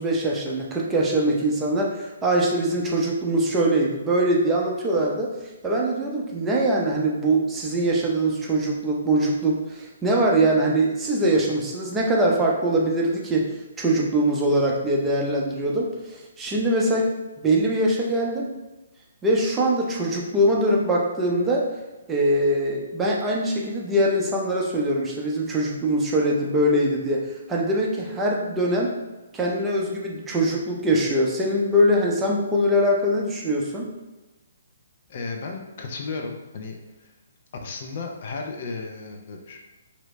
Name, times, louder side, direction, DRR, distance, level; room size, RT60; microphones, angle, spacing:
voice 1, 0.0-5.3 5.6-13.5 13.8-17.1 17.4-18.5 19.2-21.7 22.1-28.9 29.3-33.9, right 1 dB, 15° right, -3 dB, 0.6 m, -22 dB
voice 2, 35.1-37.1 37.6-39.6, left 4 dB, 50° left, 2 dB, 0.5 m, -34 dB
3.0 x 2.7 x 3.1 m, 1.1 s
hypercardioid pair, 140°, 0 cm